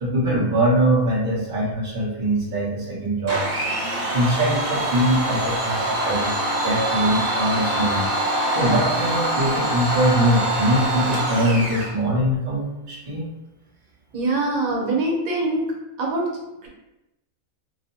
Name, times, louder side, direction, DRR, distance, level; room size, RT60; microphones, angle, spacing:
voice 1, 0.0-3.5 4.1-6.3 6.6-8.1 8.5-13.3, right 1 dB, 40° right, -5 dB, 1.0 m, -22 dB
Domestic sounds home sounds, 3.3-11.9, right 1 dB, 65° right, 1.2 m, -24 dB
voice 2, 14.1-15.7 16.0-16.3 16.6-16.7, right 2 dB, 90° right, -1 dB, 1.3 m, -23 dB
3.0 x 2.0 x 4.0 m, 0.97 s
omnidirectional pair, 1.5 m